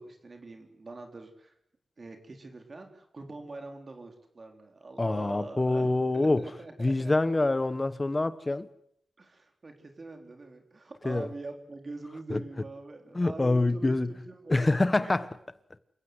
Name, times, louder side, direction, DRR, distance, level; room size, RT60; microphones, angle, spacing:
voice 1, 0.0-1.5 2.0-7.1 9.2-14.6 15.0-15.1, right 3 dB, 45° right, 3.9 m, -44 dB
voice 2, 5.0-6.5 6.8-8.7 11.0-11.3 12.3-12.4 13.1-14.1 14.5-15.3, left 2 dB, 30° left, 1.3 m, -26 dB
28.0 x 16.5 x 8.1 m
wide cardioid pair, 90°, 0 cm